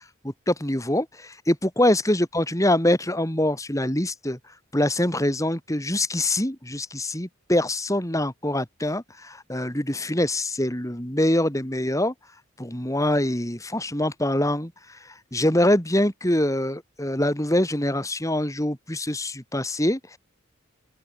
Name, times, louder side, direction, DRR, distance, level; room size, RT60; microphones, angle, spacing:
voice 1, 0.5-4.4 4.7-12.1 12.6-14.7 15.3-20.2, left 1 dB, 15° left, 3.6 m, -24 dB
open air
head